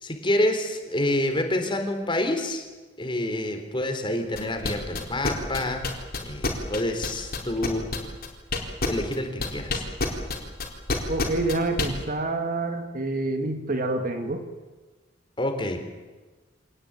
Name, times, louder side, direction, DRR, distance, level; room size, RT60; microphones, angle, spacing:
voice 1, 0.0-2.6 3.0-5.8 6.3-7.8 8.9-9.8 15.4-15.8, left 1 dB, 25° left, 6 dB, 3.8 m, -27 dB
sound 1, 4.3-11.9, left 3 dB, 50° left, 4.4 m, -27 dB
voice 2, 11.1-14.4, right 2 dB, 45° right, 5 dB, 2.4 m, -27 dB
25.5 x 19.0 x 9.5 m, 1.3 s
head